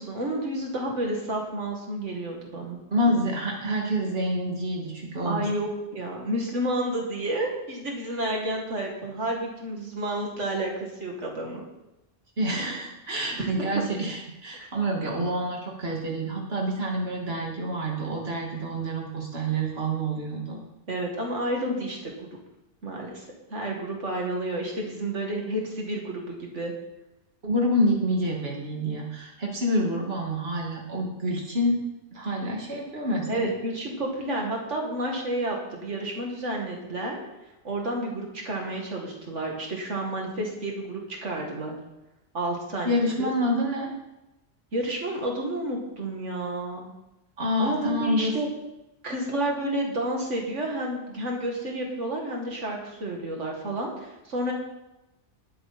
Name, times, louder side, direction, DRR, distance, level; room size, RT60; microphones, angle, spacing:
voice 1, 0.0-2.8 5.2-11.6 12.7-12.8 13.4-13.7 14.6-14.7 20.9-22.3 22.8-26.7 33.3-37.2 37.6-41.8 42.3-43.3 44.7-46.9 47.6-48.5 49.0-54.5, right 1 dB, 80° right, 0 dB, 2.6 m, -30 dB
voice 2, 2.9-5.5 12.4-20.6 27.4-31.8 32.1-33.5 42.8-43.9 47.4-48.3, equal, 55° right, -1 dB, 2.6 m, -27 dB
19.5 x 9.0 x 4.3 m, 0.96 s
omnidirectional pair, 1.2 m